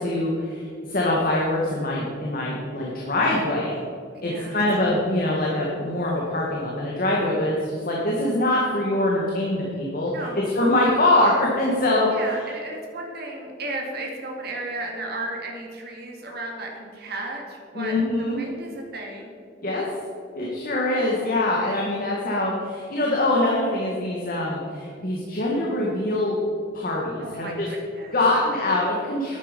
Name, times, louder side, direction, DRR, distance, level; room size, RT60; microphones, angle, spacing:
voice 1, 0.0-3.8 4.2-12.1 17.7-18.4 19.6-19.9 20.3-26.4 26.7-27.7 28.1-29.4, left 1 dB, 50° left, -3 dB, 1.9 m, -24 dB
voice 2, 4.2-4.6 10.1-10.5 12.1-19.3 27.2-28.1, right 2 dB, 60° right, 0 dB, 2.4 m, -34 dB
11.5 x 9.5 x 5.4 m, 2.4 s
head